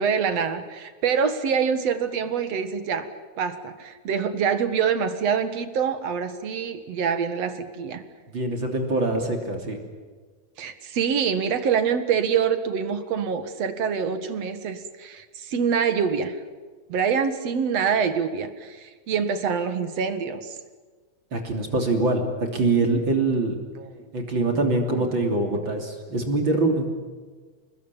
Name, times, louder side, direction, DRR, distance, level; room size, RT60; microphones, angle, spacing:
voice 1, 0.0-3.1 3.4-8.0 10.6-16.4 16.9-20.6 23.8-23.9, right 6 dB, 60° right, 10 dB, 2.7 m, -25 dB
voice 2, 8.3-9.8 21.3-22.2 22.5-23.6 24.1-26.9, right 2 dB, 40° right, 3 dB, 3.6 m, -24 dB
28.5 x 21.0 x 9.0 m, 1.4 s
omnidirectional pair, 3.4 m